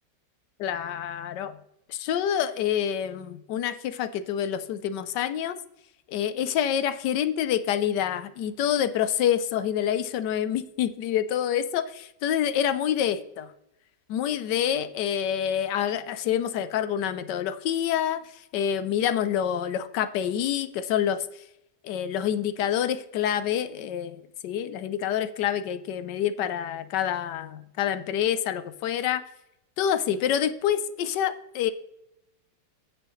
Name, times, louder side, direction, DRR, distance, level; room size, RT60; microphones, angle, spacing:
voice 1, 0.6-1.6 1.9-5.6 6.1-13.5 14.1-18.2 18.5-21.3 21.8-29.2 29.8-31.7, left 9 dB, 75° left, 12 dB, 1.3 m, -27 dB
16.5 x 6.6 x 3.1 m, 0.85 s
omnidirectional pair, 1.9 m